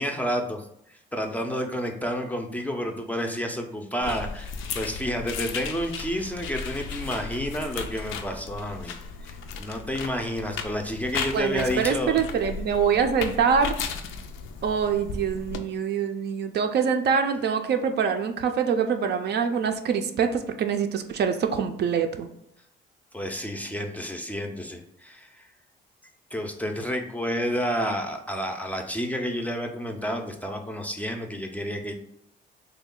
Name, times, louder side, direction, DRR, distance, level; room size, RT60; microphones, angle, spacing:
voice 1, 0.0-12.2 23.1-25.4 26.3-31.9, equal, 10° left, 3 dB, 0.4 m, -30 dB
sound 1, 4.0-15.6, left 5 dB, 85° left, 0.4 m, -35 dB
voice 2, 11.3-13.8 14.6-22.3, right 6 dB, 55° right, 6 dB, 0.4 m, -25 dB
3.2 x 2.2 x 3.7 m, 0.74 s
cardioid pair, 90°, 20 cm